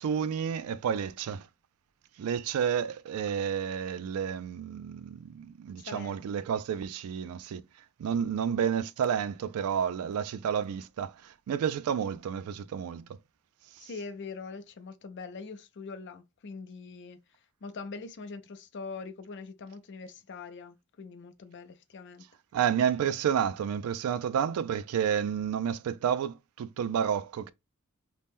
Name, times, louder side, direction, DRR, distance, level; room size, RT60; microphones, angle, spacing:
voice 1, 0.0-1.5 2.2-7.6 8.0-13.1 13.8-13.9 22.5-27.5, right 8 dB, 90° right, 0.3 m, -30 dB
voice 2, 5.8-6.2 13.8-17.2 17.6-22.3, left 4 dB, 55° left, 0.5 m, -43 dB
2.8 x 2.1 x 3.4 m
head